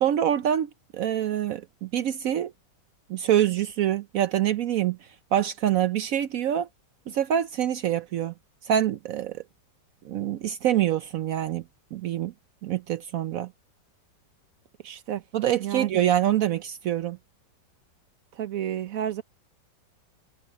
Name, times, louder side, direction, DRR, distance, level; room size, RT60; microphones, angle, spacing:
voice 1, 0.0-2.5 3.1-5.0 5.3-6.7 7.1-8.3 8.6-9.4 10.0-11.6 11.9-12.3 12.6-13.5 15.3-17.2, right 10 dB, 70° right, 0.8 m, -25 dB
voice 2, 14.8-15.2 15.6-15.9 18.3-19.2, right 10 dB, 55° right, 1.4 m, -31 dB
omnidirectional pair, 2.0 m